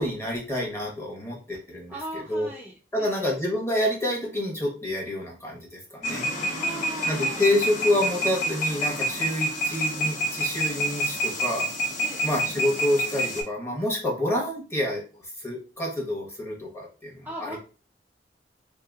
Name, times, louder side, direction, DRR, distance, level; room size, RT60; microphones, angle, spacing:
voice 1, 0.0-2.5 2.9-6.3 7.0-11.7 12.2-15.0 15.4-17.6, left 1 dB, 15° left, -1 dB, 1.0 m, -28 dB
voice 2, 1.9-3.4 6.6-7.5 8.7-8.8 9.2-9.4 12.0-12.4 17.2-17.6, right 1 dB, 10° right, -4 dB, 0.4 m, -39 dB
sound 1, 6.0-13.4, right 1 dB, 45° left, 0.8 m, -28 dB
3.5 x 2.8 x 2.4 m, 0.35 s
head